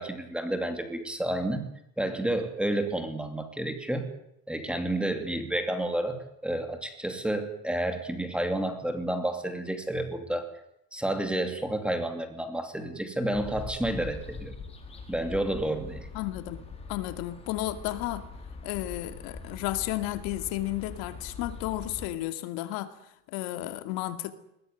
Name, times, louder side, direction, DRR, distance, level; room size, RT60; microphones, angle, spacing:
voice 1, 0.0-1.7 2.0-4.1 4.5-10.5 10.9-14.5 15.1-16.1, right 1 dB, 5° right, 2.7 m, -30 dB
sound 1, 13.3-22.1, left 4 dB, 15° left, 4.0 m, -42 dB
voice 2, 16.1-16.6 16.9-18.3 18.6-23.0 23.3-24.3, left 15 dB, 85° left, 2.4 m, -33 dB
21.5 x 20.0 x 9.5 m
cardioid pair, 175°, 35 cm